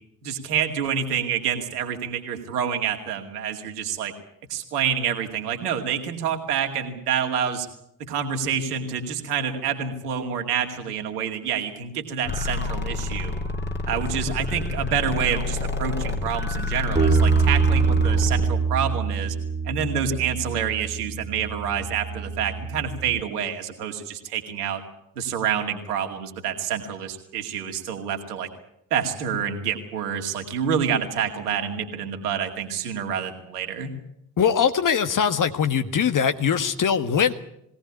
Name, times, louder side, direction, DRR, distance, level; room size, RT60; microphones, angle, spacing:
voice 1, 0.2-4.1 4.5-7.7 8.0-13.4 13.8-19.3 19.7-24.8 25.2-28.5 28.9-33.9, right 7 dB, 80° right, 4 dB, 2.4 m, -27 dB
sound 1, 12.3-18.5, left 3 dB, 25° left, 3.4 m, -28 dB
Bass guitar, 17.0-23.2, right 5 dB, 20° right, 2.4 m, -24 dB
voice 2, 34.4-37.3, left 7 dB, 45° left, 10 dB, 1.6 m, -21 dB
21.0 x 17.5 x 9.7 m, 0.78 s
figure-of-eight pair, 45°, 45 cm